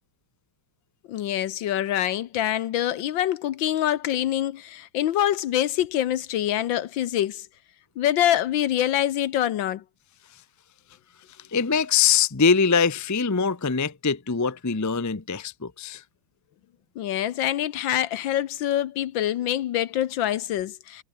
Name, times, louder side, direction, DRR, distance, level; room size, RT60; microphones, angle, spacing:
voice 1, 1.1-7.4 8.0-9.8 17.0-21.0, left 12 dB, 70° left, 1.5 m, -25 dB
voice 2, 11.5-16.0, left 6 dB, 15° left, 0.5 m, -23 dB
omnidirectional pair, 2.2 m